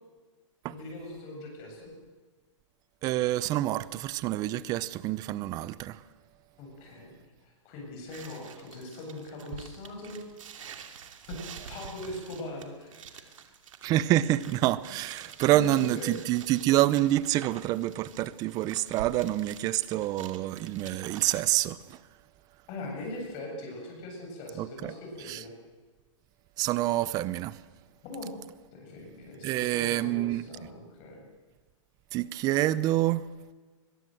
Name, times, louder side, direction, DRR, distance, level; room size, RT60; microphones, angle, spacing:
voice 1, 0.7-1.9 6.6-7.1 7.4-10.2 11.3-13.2 15.5-16.1 22.7-25.5 28.0-28.3 28.7-31.3, left 2 dB, 30° left, 7.6 m, -41 dB
voice 2, 3.0-6.0 13.8-22.0 24.6-24.9 25.3-25.4 26.6-27.6 29.4-30.5 32.1-33.3, right 15 dB, 25° right, 0.7 m, -27 dB
sound 1, 8.1-21.4, right 8 dB, 90° right, 2.6 m, -47 dB
23.5 x 22.0 x 7.8 m
hypercardioid pair, 160°, 16 cm